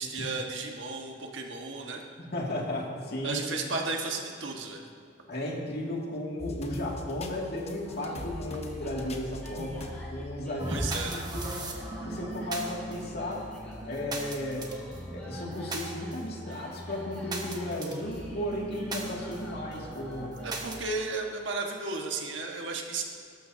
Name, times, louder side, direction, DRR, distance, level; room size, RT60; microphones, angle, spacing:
voice 1, 0.0-2.0 3.2-4.9 10.7-11.3 20.4-23.0, right 3 dB, 75° right, 1 dB, 1.6 m, -34 dB
voice 2, 2.2-3.4 5.3-11.7 12.0-13.5 13.8-14.7 15.1-20.3, left 1 dB, 60° left, -2 dB, 2.4 m, -35 dB
sound 1, 6.4-11.1 11.5-11.6 12.6-12.7, left 1 dB, 35° left, 1.0 m, -41 dB
sound 2, 7.8-20.6, equal, 5° left, 3.7 m, -49 dB
sound 3, 10.6-20.8, right 1 dB, 20° right, 1.4 m, -38 dB
20.0 x 12.0 x 2.8 m, 2.4 s
head